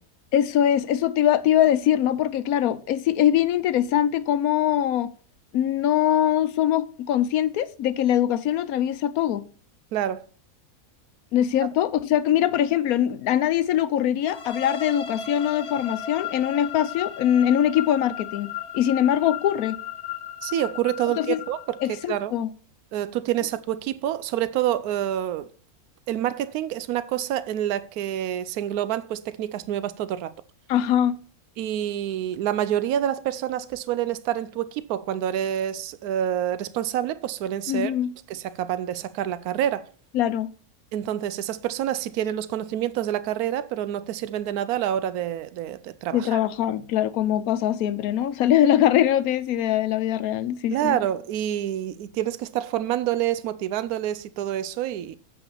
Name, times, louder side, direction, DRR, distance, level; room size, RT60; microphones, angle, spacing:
voice 1, 0.3-5.1 5.5-9.5 11.3-19.8 21.2-21.4 21.8-22.5 30.7-31.2 37.7-38.1 40.1-40.5 46.1-51.0, left 11 dB, 80° left, 1.1 m, -22 dB
voice 2, 9.9-10.2 20.4-21.8 22.1-22.3 22.9-25.5 26.1-30.3 31.6-37.9 38.3-39.9 40.9-46.4 46.7-46.8 50.7-55.2, right 11 dB, 90° right, 1.1 m, -27 dB
sound 1, 14.3-22.1, left 8 dB, 55° left, 1.3 m, -36 dB
8.7 x 4.8 x 6.9 m
omnidirectional pair, 1.5 m